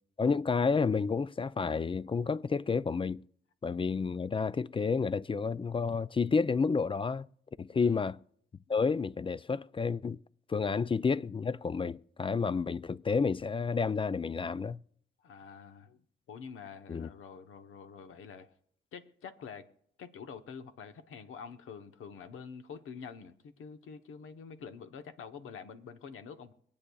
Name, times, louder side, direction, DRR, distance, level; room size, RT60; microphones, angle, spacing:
voice 1, 0.2-3.2 3.6-7.3 7.6-8.2 8.7-10.2 10.5-14.8 16.9-17.1, left 5 dB, 25° left, 0.4 m, -30 dB
voice 2, 15.2-16.0 16.3-18.5 18.9-19.7 20.0-26.5, left 6 dB, 85° left, 1.0 m, -47 dB
24.5 x 8.5 x 2.3 m
cardioid pair, 60°, 21 cm